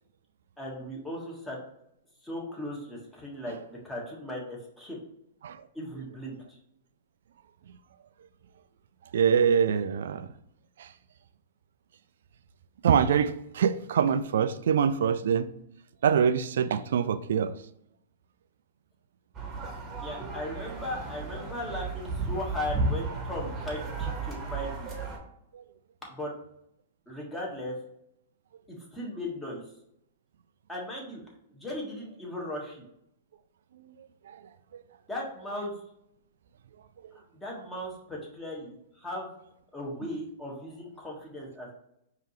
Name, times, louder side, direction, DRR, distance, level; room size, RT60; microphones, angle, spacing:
voice 1, 0.6-1.6 2.2-5.0 5.7-6.6 20.0-24.9 26.0-26.3 27.1-27.7 28.7-29.6 30.7-31.2 31.5-32.8 35.1-35.7 37.3-39.3 39.7-41.7, left 1 dB, 10° left, -3 dB, 1.5 m, -37 dB
voice 2, 9.1-10.3 10.8-10.9 12.8-15.5 16.0-17.5 25.5-25.6 33.8-33.9 34.3-34.4 37.0-37.1, right 7 dB, 70° right, 11 dB, 0.3 m, -25 dB
sound 1, 19.3-25.2, right 3 dB, 25° right, 1.1 m, -34 dB
5.0 x 2.8 x 3.1 m, 0.75 s
hypercardioid pair, 115°, 0 cm